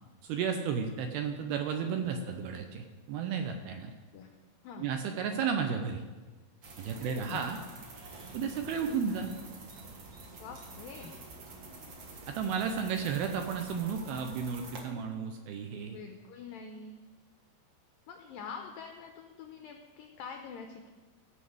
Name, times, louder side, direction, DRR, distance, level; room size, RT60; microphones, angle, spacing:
voice 1, 0.2-3.9 4.8-6.0 6.8-7.6 8.3-9.3 12.3-16.0, right 6 dB, 75° right, 5 dB, 2.4 m, -33 dB
sound 1, 6.6-14.8, right 3 dB, 55° right, 1.7 m, -48 dB
voice 2, 7.0-7.4 10.4-11.2 15.8-17.0 18.1-20.9, left 5 dB, 85° left, 4 dB, 2.0 m, -45 dB
15.0 x 5.8 x 7.8 m, 1.3 s
omnidirectional pair, 5.1 m